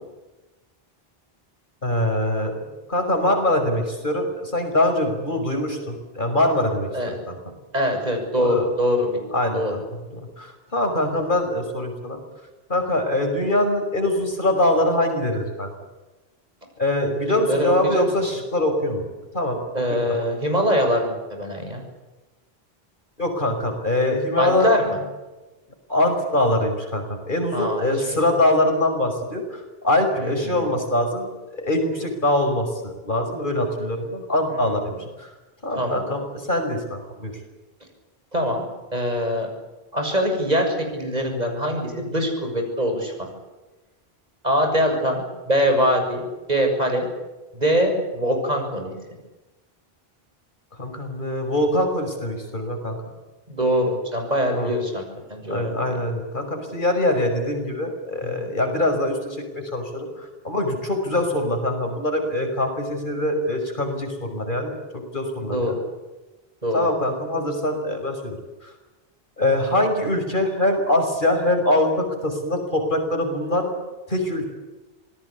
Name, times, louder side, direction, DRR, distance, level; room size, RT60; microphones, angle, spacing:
voice 1, 1.8-2.5 2.9-6.9 7.3-7.4 8.4-8.7 9.3-9.8 10.1-12.2 12.7-15.7 16.8-19.1 19.3-19.6 19.9-20.2 23.2-24.7 25.9-35.3 35.6-37.3 50.8-53.0 54.5-54.7 55.5-64.8 65.1-65.8 66.7-68.4 69.4-73.7 74.1-74.5, left 1 dB, 50° left, 4 dB, 6.0 m, -23 dB
voice 2, 7.7-9.2 9.5-9.7 17.5-18.3 19.7-21.8 24.4-25.0 27.5-27.9 30.2-30.7 34.7-34.8 35.8-36.0 38.3-39.5 39.9-43.3 44.4-47.1 47.5-48.9 53.5-55.0 55.3-55.7 58.2-58.5 65.5-65.7 66.6-66.8, equal, 40° right, 3 dB, 7.2 m, -23 dB
27.0 x 19.5 x 8.5 m, 1.1 s
omnidirectional pair, 1.0 m